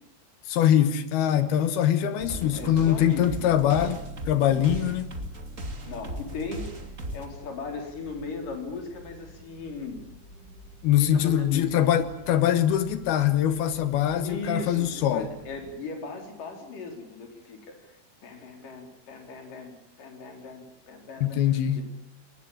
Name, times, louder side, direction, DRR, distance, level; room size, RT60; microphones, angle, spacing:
voice 1, 0.5-5.1 10.8-15.3 21.2-21.8, left 10 dB, 70° left, 2.8 m, -23 dB
sound 1, 2.2-7.3, right 1 dB, 30° right, 1.4 m, -37 dB
voice 2, 2.5-3.6 4.5-4.8 5.9-10.0 11.0-11.8 14.2-21.4 21.8-21.9, left 3 dB, 50° left, 5.5 m, -38 dB
sound 2, 6.0-15.7, left 1 dB, 10° left, 7.0 m, -50 dB
22.5 x 20.0 x 8.9 m
omnidirectional pair, 5.2 m